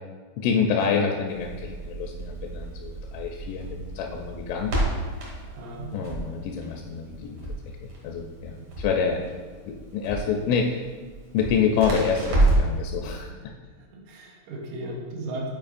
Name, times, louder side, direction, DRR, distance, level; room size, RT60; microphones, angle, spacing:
voice 1, 0.4-4.8 5.9-7.4 7.8-9.2 9.7-10.8 11.3-13.3, left 6 dB, 85° left, 2 dB, 2.9 m, -27 dB
Crackle, 1.3-12.8, right 2 dB, 70° right, 1.4 m, -29 dB
voice 2, 5.3-6.1 8.6-8.7 13.8-15.5, right 1 dB, 85° right, -1 dB, 3.4 m, -36 dB
9.6 x 4.6 x 2.5 m, 1.5 s
omnidirectional pair, 5.5 m